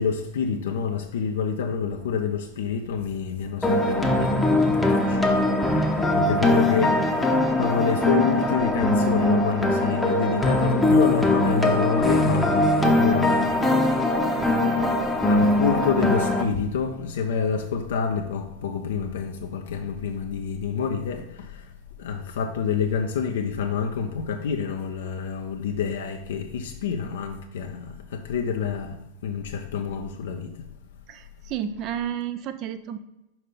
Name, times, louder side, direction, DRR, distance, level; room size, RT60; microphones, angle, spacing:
voice 1, 0.0-7.3 7.6-13.9 14.7-21.7 22.0-30.6, left 6 dB, 60° left, 0.5 m, -28 dB
sound 1, 3.6-16.4, left 1 dB, 5° left, 0.7 m, -21 dB
voice 2, 31.1-33.0, right 9 dB, 35° right, 0.4 m, -31 dB
5.6 x 5.4 x 3.8 m
figure-of-eight pair, 90°, 0 cm